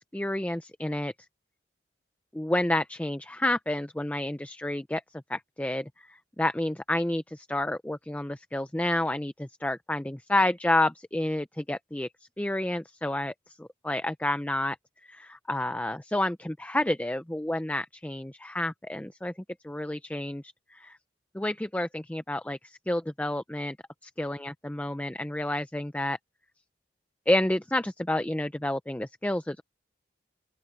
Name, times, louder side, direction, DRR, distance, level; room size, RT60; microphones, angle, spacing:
voice 1, 0.1-1.1 2.3-5.0 5.3-5.9 6.4-12.1 12.4-13.3 13.6-14.8 15.1-19.3 19.6-20.4 20.7-21.0 21.3-23.8 24.2-26.2 27.3-29.6, left 1 dB, 10° left, 0.5 m, -29 dB
open air
head